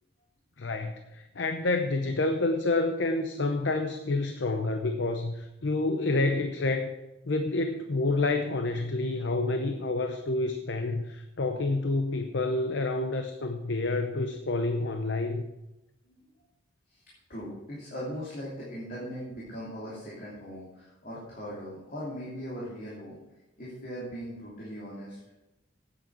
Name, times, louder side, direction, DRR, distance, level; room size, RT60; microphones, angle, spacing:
voice 1, 0.6-7.0 7.3-15.5, left 2 dB, 60° left, 6 dB, 0.7 m, -28 dB
voice 2, 17.3-23.2 23.6-25.2, equal, 45° left, -7 dB, 3.0 m, -39 dB
8.9 x 8.8 x 6.1 m, 0.99 s
head